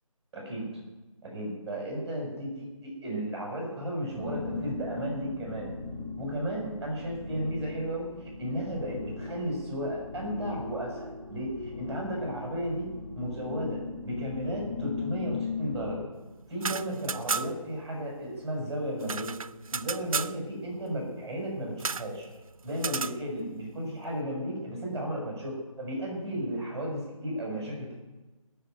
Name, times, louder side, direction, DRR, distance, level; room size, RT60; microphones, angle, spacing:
voice 1, 0.3-0.7 1.2-5.7 6.2-12.9 13.2-16.0 16.5-19.4 19.7-22.3 22.6-28.0, equal, 5° right, -3 dB, 6.4 m, -34 dB
sound 1, 4.0-16.0, left 4 dB, 30° left, 2.9 m, -38 dB
sound 2, 16.5-17.7 18.0-18.1 18.4-20.4 21.8-22.1 22.8-23.2, right 5 dB, 75° right, 0.5 m, -33 dB
19.0 x 6.9 x 9.3 m, 1.1 s
figure-of-eight pair, 160°, 18 cm